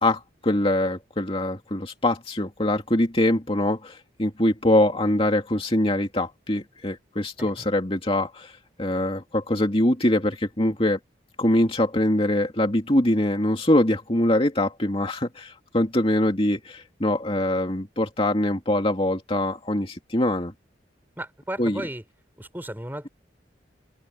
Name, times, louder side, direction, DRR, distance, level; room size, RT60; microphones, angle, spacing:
voice 1, 0.0-11.0 11.4-20.5 21.6-21.8, left 1 dB, 30° left, 2.5 m, -23 dB
voice 2, 21.2-22.0 22.4-23.1, right 1 dB, 10° right, 4.7 m, -34 dB
open air
head